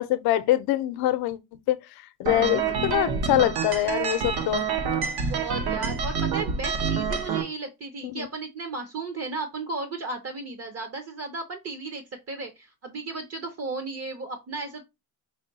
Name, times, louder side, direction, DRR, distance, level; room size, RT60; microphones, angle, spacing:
voice 1, 0.0-1.4 1.7-4.6 8.1-8.3, left 14 dB, 75° left, 0.6 m, -24 dB
sound 1, 2.3-7.4, right 5 dB, 75° right, 1.1 m, -27 dB
voice 2, 5.3-14.8, right 3 dB, 40° right, 0.8 m, -35 dB
4.9 x 2.2 x 3.9 m
cardioid pair, 120°, 38 cm